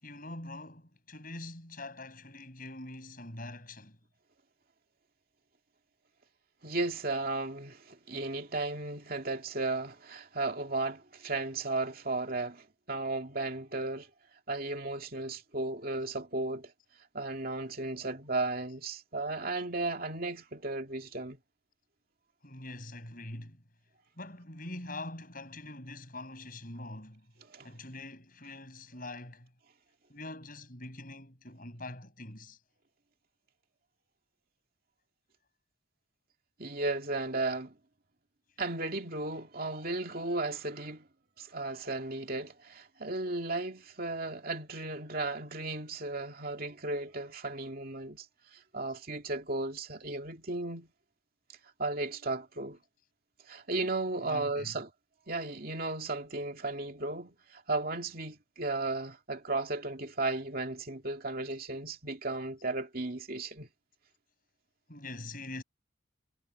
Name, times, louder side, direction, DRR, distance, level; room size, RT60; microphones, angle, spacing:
voice 1, 0.0-4.0 22.4-23.6 24.2-27.3 27.6-29.5 30.1-32.6 54.2-54.8 64.9-65.6, left 2 dB, 45° left, 7.3 m, -44 dB
voice 2, 6.6-14.1 14.5-16.7 17.1-21.4 27.5-27.7 36.6-37.7 38.6-41.1 41.4-48.3 48.5-50.9 51.8-52.8 53.5-54.9 55.3-63.7, right 2 dB, 45° right, 2.6 m, -35 dB
head